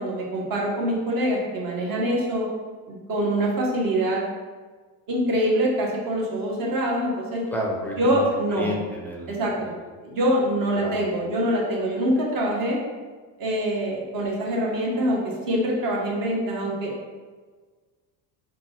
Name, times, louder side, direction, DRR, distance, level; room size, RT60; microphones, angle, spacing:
voice 1, 0.0-2.5 2.9-4.2 5.1-7.4 8.0-8.7 9.3-9.5 10.0-12.8 13.4-16.9, right 1 dB, 45° right, -3 dB, 1.2 m, -24 dB
voice 2, 7.5-8.2 8.5-9.3 9.6-9.7 10.7-11.0, left 1 dB, 5° left, -2 dB, 0.5 m, -30 dB
3.8 x 2.3 x 4.2 m, 1.4 s
cardioid pair, 120°, 46 cm